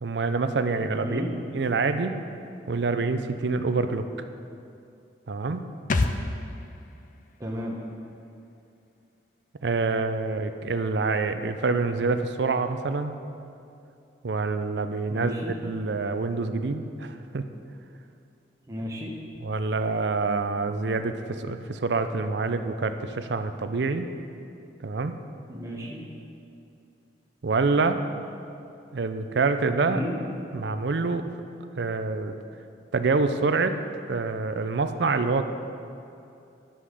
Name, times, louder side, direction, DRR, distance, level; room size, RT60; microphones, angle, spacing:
voice 1, 0.0-1.2 1.5-2.2 2.7-4.1 5.3-5.7 9.6-13.1 14.2-17.4 19.4-24.1 24.8-25.1 27.4-28.0 28.9-30.0 30.5-31.3 31.8-32.3 32.9-33.8 34.1-35.4, right 3 dB, 70° right, 9 dB, 0.5 m, -26 dB
sound 1, 5.9-9.4 9.7-9.8, left 2 dB, 45° left, 0.5 m, -32 dB
voice 2, 7.4-7.8 15.1-15.5 18.7-19.1 25.5-26.0 29.8-30.2, equal, 20° right, -3 dB, 1.0 m, -32 dB
10.0 x 5.6 x 6.4 m, 2.6 s
head